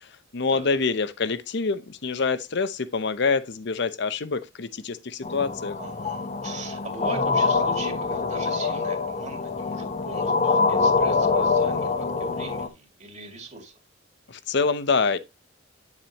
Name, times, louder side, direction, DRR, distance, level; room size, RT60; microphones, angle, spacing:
voice 1, 0.3-5.8 14.3-15.2, left 4 dB, 60° left, 0.8 m, -26 dB
sound 1, 5.2-12.7, left 4 dB, 35° left, 0.9 m, -25 dB
voice 2, 5.8-13.8, right 3 dB, 35° right, 2.3 m, -40 dB
9.4 x 7.3 x 2.9 m
head